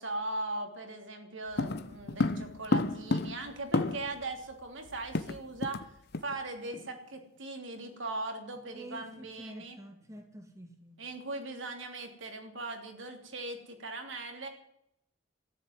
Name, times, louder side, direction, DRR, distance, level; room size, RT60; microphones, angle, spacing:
voice 1, 0.0-5.9 6.2-9.8 11.0-14.5, right 2 dB, 65° right, 4 dB, 3.0 m, -39 dB
sound 1, 1.6-4.2 4.5-4.6 4.9-5.9 6.1-6.4 6.7-7.0, left 2 dB, 55° left, 0.9 m, -31 dB
voice 2, 8.7-11.1, equal, 15° right, 5 dB, 1.7 m, -48 dB
13.5 x 10.5 x 9.3 m, 0.77 s
head